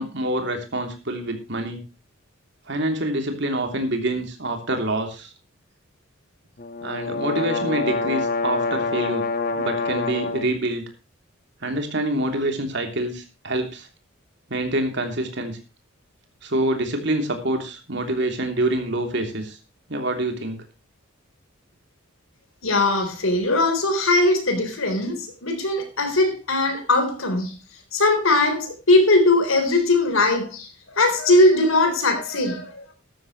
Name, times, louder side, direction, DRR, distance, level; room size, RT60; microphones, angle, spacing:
voice 1, 0.0-1.8 2.7-5.3 6.8-9.2 9.5-10.8 11.6-13.9 14.5-15.6 16.4-19.6 19.9-20.6, right 1 dB, 60° right, 3.1 m, -26 dB
sound 1, 6.6-10.5, left 3 dB, 45° left, 1.6 m, -26 dB
voice 2, 22.6-27.6 27.9-30.7 30.9-32.9, left 2 dB, 85° left, 3.9 m, -20 dB
14.0 x 13.0 x 3.1 m
head